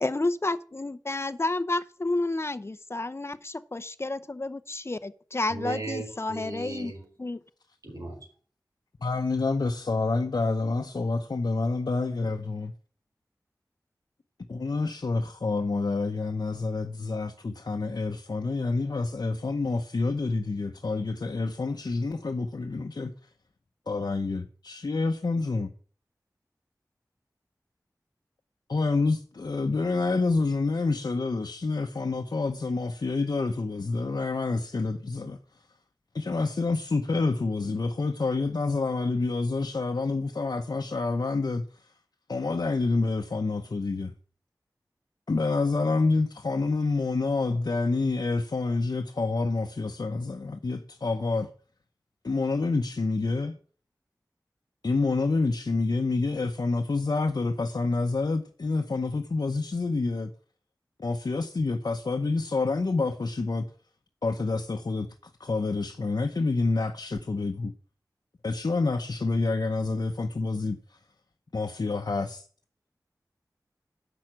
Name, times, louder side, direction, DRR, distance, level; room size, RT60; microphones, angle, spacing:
voice 1, 0.0-6.9 7.2-7.4, left 2 dB, 35° left, 0.7 m, -30 dB
voice 2, 5.5-7.0 7.8-8.3, right 2 dB, 55° right, 4.0 m, -36 dB
voice 3, 9.0-12.7 14.5-23.1 23.9-25.7 28.7-35.4 36.1-41.6 42.3-44.1 45.3-51.5 52.2-53.6 54.8-60.3 61.0-63.7 64.2-67.7 68.4-70.8 71.5-72.5, left 3 dB, 70° left, 0.8 m, -28 dB
7.9 x 5.9 x 7.5 m
wide cardioid pair, 40°, 7 cm